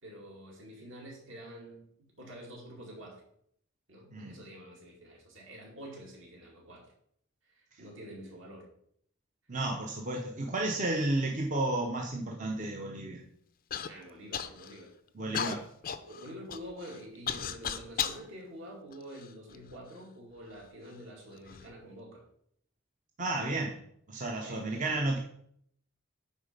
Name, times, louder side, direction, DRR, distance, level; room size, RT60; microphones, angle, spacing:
voice 1, 0.0-3.2 3.9-6.9 7.5-8.7 10.4-10.5 13.9-15.0 16.0-22.2 24.4-25.0, equal, 60° right, -2 dB, 2.5 m, -47 dB
voice 2, 9.5-13.2 15.1-15.7 23.2-23.8 24.1-25.2, right 2 dB, 35° right, 1 dB, 0.8 m, -32 dB
Human voice / Cough, 13.7-13.9 14.3-14.8 15.3-18.2 18.9-19.8 20.5-20.6 21.3-21.7, left 8 dB, 40° left, 0.4 m, -36 dB
9.3 x 4.0 x 5.3 m, 0.68 s
head